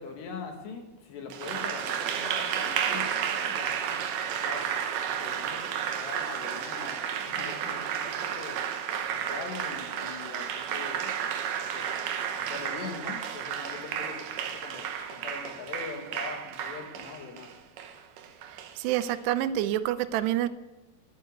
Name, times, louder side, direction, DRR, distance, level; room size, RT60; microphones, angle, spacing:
voice 1, 0.0-4.7 5.1-8.6 9.1-11.1 11.7-11.9 12.3-17.5, left 4 dB, 85° left, 4.1 m, -42 dB
Applause, 1.3-19.1, right 8 dB, 70° right, 2.2 m, -32 dB
voice 2, 18.8-20.5, right 12 dB, 90° right, 2.8 m, -27 dB
11.5 x 9.4 x 7.8 m
omnidirectional pair, 4.7 m